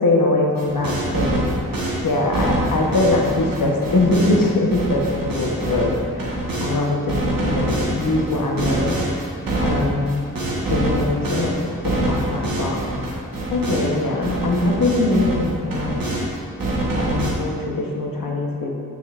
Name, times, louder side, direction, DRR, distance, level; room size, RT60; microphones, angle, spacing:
voice 1, 0.0-9.0 9.6-10.3 10.7-11.6 11.8-12.8 13.1-13.2 13.5-16.0 16.9-18.7, left 2 dB, 75° left, 0 dB, 1.0 m, -22 dB
sound 1, 0.6-6.8 7.1-14.0 14.2-16.3 16.6-17.3, right 1 dB, 80° right, 1.3 m, -25 dB
9.1 x 5.3 x 2.5 m, 2.4 s
cardioid pair, 45°, 33 cm